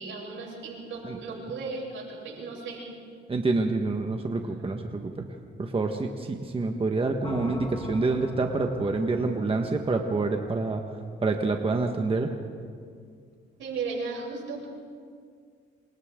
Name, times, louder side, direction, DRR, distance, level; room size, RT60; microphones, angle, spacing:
voice 1, 0.0-2.9 13.6-14.7, right 4 dB, 80° right, -3 dB, 7.8 m, -35 dB
voice 2, 3.3-5.3 5.6-10.8 11.2-12.3, right 3 dB, 30° right, 3 dB, 1.5 m, -27 dB
sound 1, 7.2-11.3, left 2 dB, 25° left, 1.8 m, -42 dB
27.5 x 25.5 x 3.8 m, 2.1 s
cardioid pair, 90°, 20 cm